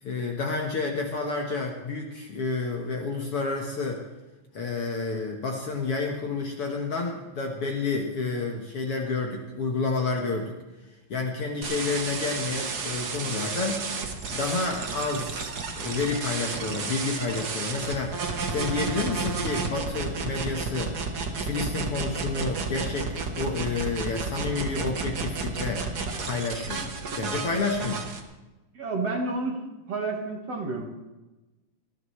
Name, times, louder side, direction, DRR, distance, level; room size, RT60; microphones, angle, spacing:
voice 1, 0.0-4.0 4.5-10.5 11.1-13.9 14.3-21.0 21.4-25.9 26.2-28.0, left 3 dB, 50° left, 0 dB, 2.0 m, -30 dB
sound 1, 11.6-28.2, right 4 dB, 90° right, 0.8 m, -32 dB
voice 2, 28.7-29.6 29.9-30.9, right 3 dB, 50° right, 1 dB, 2.5 m, -30 dB
20.0 x 14.5 x 3.3 m, 1.1 s
omnidirectional pair, 3.9 m